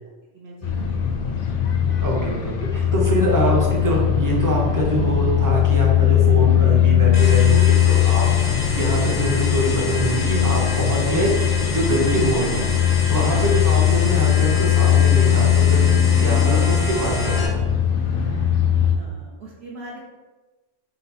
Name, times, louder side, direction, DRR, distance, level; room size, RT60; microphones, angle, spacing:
voice 1, 0.3-0.9 12.0-12.2 13.3-13.6 18.2-18.7 19.0-20.0, right 3 dB, 65° right, -3 dB, 0.8 m, -41 dB
sound 1, 0.6-18.9, left 10 dB, 60° left, 0.6 m, -19 dB
voice 2, 2.0-11.3 11.7-12.6 12.9-17.6, right 1 dB, 20° right, -2 dB, 0.5 m, -24 dB
sound 2, 7.1-17.5, left 3 dB, 85° left, 1.1 m, -30 dB
3.8 x 2.0 x 4.2 m, 1.2 s
omnidirectional pair, 1.2 m